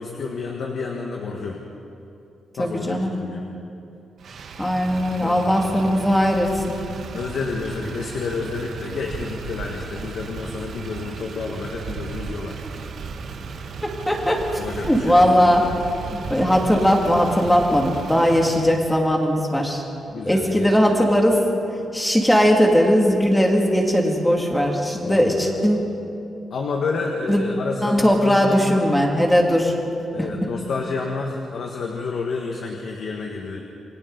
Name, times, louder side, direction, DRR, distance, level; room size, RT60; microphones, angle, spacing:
voice 1, 0.0-1.6 2.6-3.5 5.2-6.1 7.1-12.6 14.6-15.5 20.1-20.8 25.0-25.5 26.5-28.8 30.1-33.6, left 4 dB, 55° left, 1 dB, 1.7 m, -30 dB
voice 2, 2.6-3.1 4.6-6.5 13.8-14.4 14.9-15.6 16.1-19.8 20.3-21.4 21.9-25.9 27.3-27.4 27.8-29.7, equal, 5° left, 0 dB, 2.5 m, -19 dB
Motor vehicle (road), 4.2-18.8, right 5 dB, 55° right, 1.4 m, -35 dB
28.5 x 23.5 x 4.1 m, 2.7 s
wide cardioid pair, 160°, 0 cm